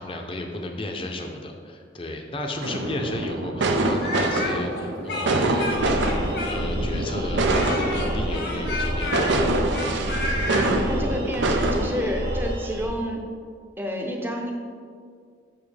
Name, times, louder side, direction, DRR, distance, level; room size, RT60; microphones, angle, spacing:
voice 1, 0.0-9.4, left 1 dB, 30° left, 3 dB, 0.6 m, -33 dB
sound 1, 2.6-12.0, right 2 dB, 90° right, 0.6 m, -25 dB
Speech, 4.0-6.9 7.5-10.7, left 2 dB, 70° left, 1.2 m, -31 dB
sound 2, 5.5-12.9, equal, 60° right, 1.4 m, -30 dB
voice 2, 10.5-13.2 13.8-14.5, equal, 10° right, 1 dB, 0.6 m, -29 dB
7.1 x 5.8 x 3.3 m, 2.1 s
head